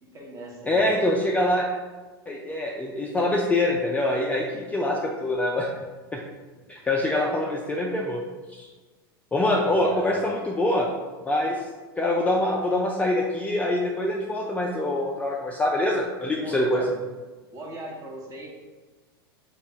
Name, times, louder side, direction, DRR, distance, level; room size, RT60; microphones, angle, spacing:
voice 1, 0.0-0.8 9.5-10.3 16.3-16.9 17.5-18.5, right 2 dB, 25° right, -2 dB, 0.9 m, -38 dB
voice 2, 0.7-1.7 2.3-5.7 6.1-6.2 6.7-8.2 8.5-8.7 9.3-10.9 11.3-11.6 12.0-16.8, left 1 dB, 10° left, -2 dB, 0.3 m, -24 dB
3.1 x 2.3 x 3.8 m, 1.3 s
hypercardioid pair, 100°, 13 cm